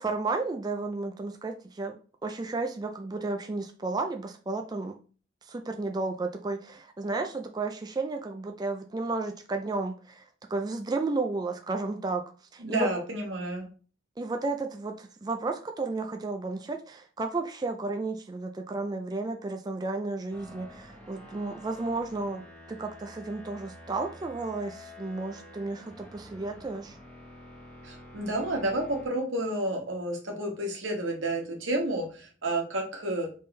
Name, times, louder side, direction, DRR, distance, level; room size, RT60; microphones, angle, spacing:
voice 1, 0.0-2.0 2.2-4.9 5.4-10.2 10.5-12.2 12.5-12.9 14.2-22.4 22.7-27.0, right 3 dB, 20° right, 5 dB, 0.3 m, -33 dB
voice 2, 12.6-13.7 27.8-33.4, right 1 dB, 90° right, 1 dB, 1.4 m, -30 dB
sound 1, 20.3-29.1, left 1 dB, 5° left, 1.0 m, -49 dB
4.1 x 3.6 x 3.2 m, 0.38 s
head